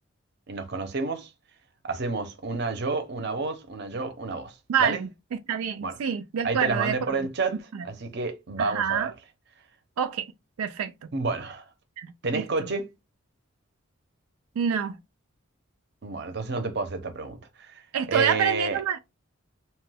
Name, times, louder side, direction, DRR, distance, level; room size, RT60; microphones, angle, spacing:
voice 1, 0.5-1.3 1.8-5.0 5.8-6.0 6.4-9.1 11.1-11.6 12.2-12.9 16.0-17.8 18.1-18.8, right 3 dB, 50° right, 0.6 m, -30 dB
voice 2, 4.7-7.0 7.7-7.8 8.6-9.1 10.0-10.3 10.6-10.9 12.0-12.5 14.6-15.0 17.9-19.0, right 7 dB, 90° right, 0.4 m, -27 dB
2.8 x 2.2 x 3.3 m
head